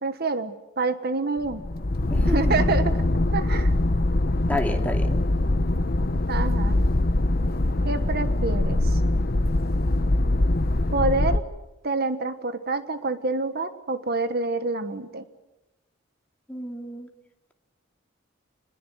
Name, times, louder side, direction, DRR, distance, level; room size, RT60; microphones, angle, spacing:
voice 1, 0.0-1.6 2.2-3.0 3.3-3.7 6.3-6.8 7.8-9.0 10.9-11.4 11.8-15.2, right 3 dB, 50° right, 10 dB, 1.4 m, -27 dB
sound 1, 1.4-11.4, left 1 dB, 50° left, 0.9 m, -23 dB
voice 2, 2.1-2.7 4.5-5.2 16.5-17.1, left 1 dB, 10° left, 3 dB, 2.7 m, -30 dB
27.0 x 21.0 x 7.9 m, 0.98 s
head